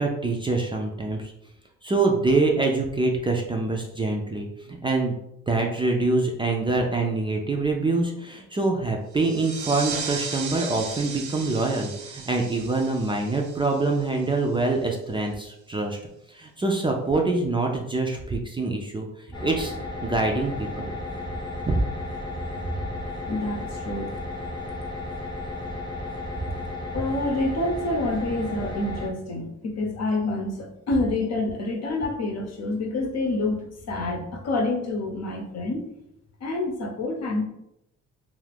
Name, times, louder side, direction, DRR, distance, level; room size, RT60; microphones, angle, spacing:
voice 1, 0.0-1.3 1.8-5.2 5.5-16.0 16.3-19.1 19.4-19.7 20.0-20.9 21.7-21.8, right 3 dB, 15° right, 1 dB, 0.4 m, -25 dB
sound 1, 9.1-14.4, right 5 dB, 65° right, 0.7 m, -36 dB
sound 2, 19.3-29.1, left 2 dB, 15° left, 0.7 m, -34 dB
voice 2, 23.3-24.1 26.9-35.9 36.4-37.4, left 2 dB, 60° left, 2 dB, 0.8 m, -27 dB
2.4 x 2.4 x 3.4 m, 0.81 s
cardioid pair, 90°, 30 cm